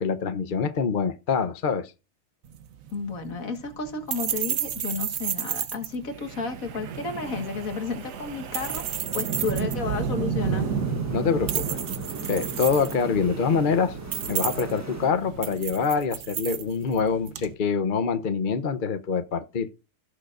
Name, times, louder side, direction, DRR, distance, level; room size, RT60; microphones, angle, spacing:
voice 1, 0.0-1.9 11.1-11.8 12.3-14.0 14.3-19.7, left 5 dB, 40° left, 0.8 m, -25 dB
sound 1, 2.4-17.5, right 9 dB, 60° right, 1.2 m, -34 dB
voice 2, 2.9-8.8 9.1-10.7, left 4 dB, 60° left, 2.0 m, -32 dB
Wind, 6.1-16.4, right 6 dB, 85° right, 1.6 m, -33 dB
sound 2, 10.4-15.1, equal, 10° right, 1.7 m, -41 dB
17.0 x 6.7 x 2.5 m
omnidirectional pair, 1.7 m